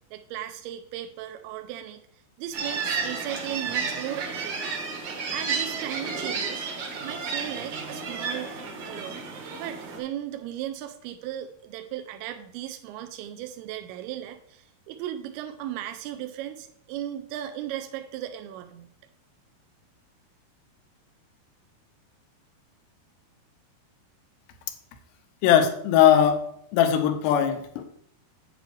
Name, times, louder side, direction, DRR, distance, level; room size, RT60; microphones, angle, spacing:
voice 1, 0.1-2.0 2.4-4.8 5.3-6.7 7.0-8.6 8.8-9.3 9.6-18.9, right 12 dB, 80° right, 7 dB, 2.4 m, -36 dB
sound 1, 2.5-10.0, right 5 dB, 60° right, 2.4 m, -32 dB
voice 2, 25.4-26.5 26.7-27.8, left 9 dB, 90° left, 7 dB, 3.0 m, -20 dB
8.1 x 8.1 x 3.2 m, 0.68 s
omnidirectional pair, 4.8 m